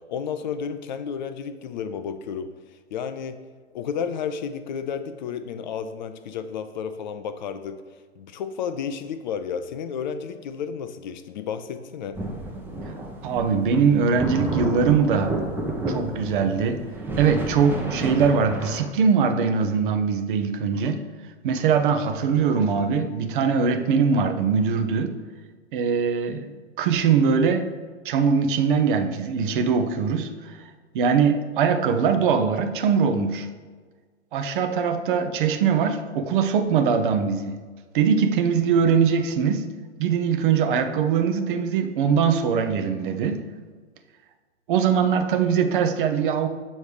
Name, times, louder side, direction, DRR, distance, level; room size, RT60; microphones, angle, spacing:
voice 1, 0.1-2.5 2.9-3.4 3.7-7.8 8.2-12.2, left 7 dB, 40° left, 10 dB, 0.4 m, -32 dB
sound 1, 12.1-18.9, right 1 dB, 5° right, 0.6 m, -31 dB
voice 2, 13.2-15.4 15.9-16.8 17.2-21.0 21.4-25.2 25.7-26.5 26.8-27.7 28.0-30.6 30.9-33.5 34.3-37.6 37.9-39.7 40.0-43.4 44.7-46.5, right 6 dB, 45° right, 8 dB, 0.7 m, -22 dB
7.1 x 3.2 x 4.9 m, 1.5 s
figure-of-eight pair, 100°, 35 cm